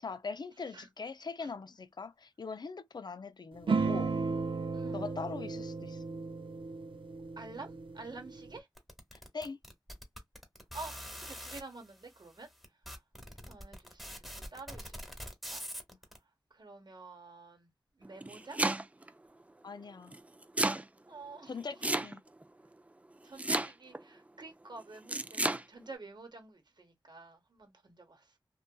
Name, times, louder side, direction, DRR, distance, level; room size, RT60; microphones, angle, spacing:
voice 1, 0.0-4.1 4.9-6.0 9.3-9.6 15.9-16.0 19.6-20.1 21.5-22.2, left 4 dB, 60° left, 0.4 m, -41 dB
sound 1, 3.7-8.6, right 4 dB, 85° right, 0.4 m, -35 dB
voice 2, 4.7-5.1 7.4-8.7 10.7-12.5 13.5-14.2 14.5-15.6 16.6-17.7 18.0-18.6 21.1-21.5 23.2-28.4, right 3 dB, 60° right, 1.0 m, -49 dB
sound 2, 8.8-11.6 12.3-12.4 12.6-16.2, equal, ahead, 1.0 m, -44 dB
Domestic sounds home sounds, 18.0-19.1 20.1-20.8 21.8-22.4 23.4-24.0 25.1-25.6, right 2 dB, 15° right, 0.3 m, -31 dB
2.6 x 2.2 x 2.2 m
wide cardioid pair, 50°, 8 cm